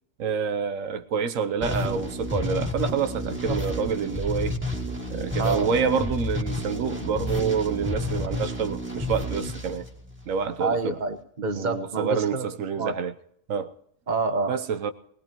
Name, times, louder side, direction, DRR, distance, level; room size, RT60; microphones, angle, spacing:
voice 1, 0.2-4.6 5.1-9.9 10.3-11.0 11.5-13.1 13.5-13.7 14.5-14.9, right 6 dB, 80° right, 1.2 m, -27 dB
sound 1, 1.6-10.5, left 1 dB, 10° right, 2.4 m, -31 dB
voice 2, 10.6-12.4 12.8-12.9 14.1-14.5, right 4 dB, 35° right, 1.3 m, -27 dB
20.5 x 19.5 x 3.0 m
omnidirectional pair, 1.3 m